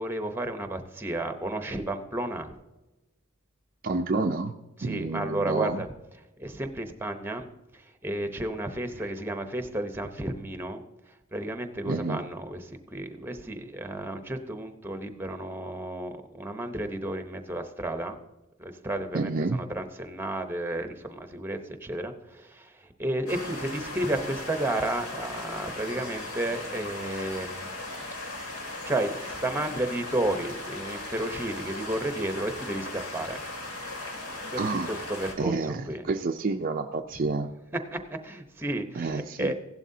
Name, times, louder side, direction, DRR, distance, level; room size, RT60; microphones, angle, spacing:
voice 1, 0.0-2.5 4.8-5.9 6.4-10.8 11.1-18.2 18.6-27.7 28.8-33.4 34.5-36.0 37.9-39.5, right 1 dB, 10° right, 7 dB, 0.8 m, -32 dB
voice 2, 3.8-4.6 4.8-5.8 11.9-12.2 19.1-19.6 34.6-34.9 35.4-37.5 38.9-39.5, right 3 dB, 40° right, 4 dB, 0.5 m, -29 dB
sound 1, 23.3-35.3, left 2 dB, 80° left, 2.5 m, -38 dB
16.0 x 11.5 x 2.7 m, 1.0 s
head